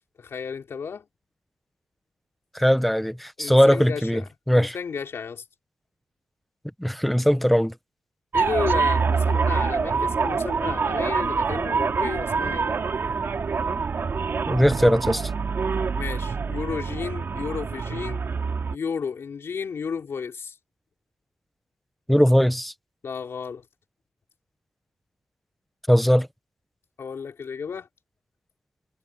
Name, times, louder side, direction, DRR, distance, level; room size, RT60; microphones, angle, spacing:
voice 1, 0.2-1.1 3.4-5.4 8.3-12.8 16.0-18.2 18.7-20.6 23.0-23.6 27.0-27.9, left 6 dB, 65° left, 4.3 m, -33 dB
voice 2, 2.5-4.2 4.5-4.7 6.8-7.7 14.5-15.3 22.1-22.7 25.9-26.3, equal, ahead, 0.8 m, -19 dB
sound 1, 8.3-18.7, right 5 dB, 55° right, 2.5 m, -25 dB
wide cardioid pair, 135°, 5 cm